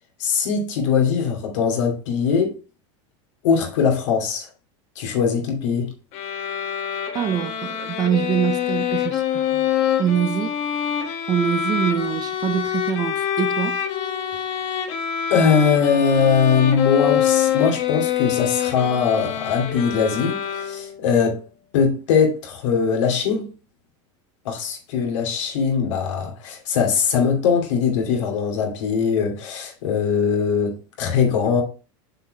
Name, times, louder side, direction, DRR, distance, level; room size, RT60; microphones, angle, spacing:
voice 1, 0.2-2.6 3.4-4.5 5.0-5.9 15.3-21.4 21.7-23.5 24.4-31.6, left 6 dB, 80° left, 2.8 m, -21 dB
sound 1, 6.1-21.1, left 9 dB, 45° left, 1.2 m, -25 dB
voice 2, 7.1-9.7 10.0-10.6 11.3-13.8, right 9 dB, 25° right, 0.6 m, -24 dB
6.7 x 4.6 x 4.8 m
supercardioid pair, 160°, 16 cm